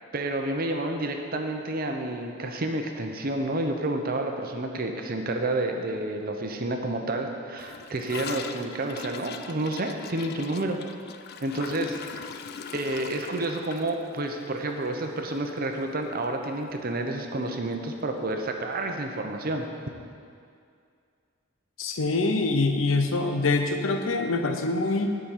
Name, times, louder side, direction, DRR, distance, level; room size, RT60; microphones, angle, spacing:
voice 1, 0.1-10.8 11.4-12.3 12.7-19.7, right 2 dB, 50° right, 4 dB, 0.8 m, -30 dB
Gurgling / Toilet flush, 7.6-15.8 16.1-16.2 16.5-17.0 17.2-17.3 17.6-17.7 18.7-18.8, left 6 dB, 55° left, 0.4 m, -41 dB
voice 2, 21.8-25.1, left 3 dB, 90° left, 5 dB, 0.7 m, -25 dB
9.7 x 5.1 x 5.8 m, 2.3 s
head